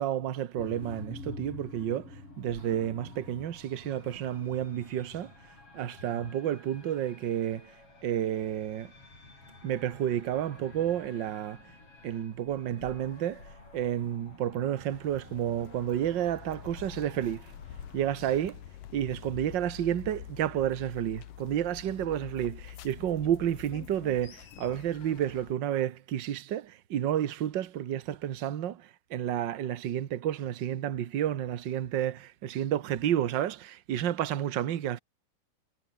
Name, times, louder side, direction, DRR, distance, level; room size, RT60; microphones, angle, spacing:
voice 1, 0.0-5.3 5.7-7.7 8.0-8.9 9.6-11.6 12.0-13.4 13.7-17.5 17.9-18.5 18.9-35.0, right 10 dB, 65° right, 1.1 m, -31 dB
sound 1, 0.6-18.6, left 3 dB, 40° left, 8.4 m, -49 dB
sound 2, 14.9-25.5, left 12 dB, 80° left, 3.1 m, -47 dB
omnidirectional pair, 3.8 m